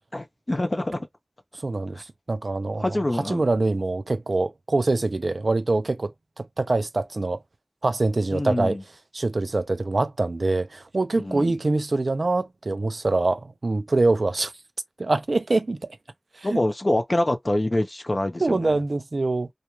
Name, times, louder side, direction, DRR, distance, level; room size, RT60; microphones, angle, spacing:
voice 1, 0.1-1.1 2.8-3.5 8.3-8.8 11.2-11.6 16.4-18.8, left 1 dB, 50° left, 0.6 m, -26 dB
voice 2, 1.6-2.8 3.1-7.4 7.8-8.8 9.1-14.5 15.0-15.8 16.4-16.6 18.4-19.5, right 2 dB, 85° right, 0.4 m, -24 dB
2.3 x 2.3 x 2.9 m
wide cardioid pair, 45°, 0 cm